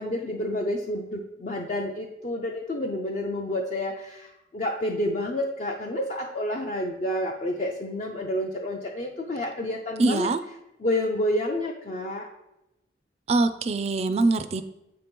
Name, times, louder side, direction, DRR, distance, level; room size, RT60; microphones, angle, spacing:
voice 1, 0.0-10.3 10.8-12.3, left 1 dB, 40° left, 1 dB, 0.5 m, -29 dB
voice 2, 10.0-10.4 13.3-14.6, right 3 dB, 35° right, 11 dB, 0.3 m, -23 dB
7.8 x 2.9 x 5.1 m, 0.91 s
head